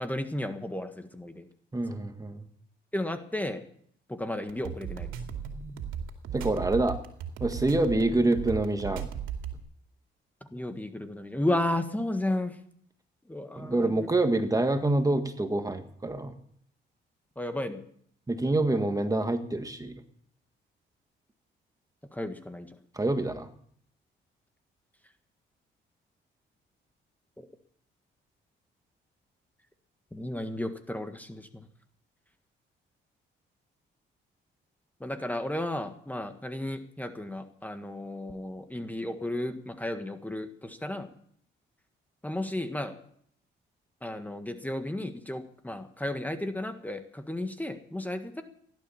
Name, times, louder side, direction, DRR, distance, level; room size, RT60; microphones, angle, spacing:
voice 1, 0.0-1.5 2.9-3.6 4.1-5.1 10.5-12.6 13.3-14.1 17.4-17.8 22.1-22.7 27.4-27.5 30.1-31.7 35.0-41.1 42.2-42.9 44.0-48.4, left 1 dB, 10° left, 7 dB, 1.6 m, -33 dB
voice 2, 1.7-2.4 6.3-7.0 7.4-9.1 13.6-16.3 18.3-20.0 22.9-23.5, right 2 dB, 15° right, 7 dB, 1.7 m, -26 dB
sound 1, 4.5-9.6, right 8 dB, 90° right, 2.4 m, -36 dB
16.5 x 12.0 x 7.1 m, 0.63 s
cardioid pair, 90°, 20 cm